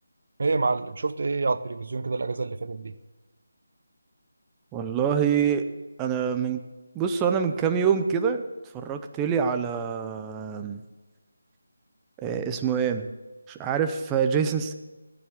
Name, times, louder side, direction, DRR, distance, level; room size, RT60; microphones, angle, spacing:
voice 1, 0.4-2.9, right 3 dB, 50° right, 12 dB, 0.7 m, -27 dB
voice 2, 4.7-5.6 6.0-6.6 6.9-8.4 8.7-10.8 12.2-13.1 13.5-14.7, right 7 dB, 10° right, 6 dB, 0.6 m, -25 dB
14.0 x 7.2 x 7.6 m, 1.1 s
figure-of-eight pair, 170°, 0 cm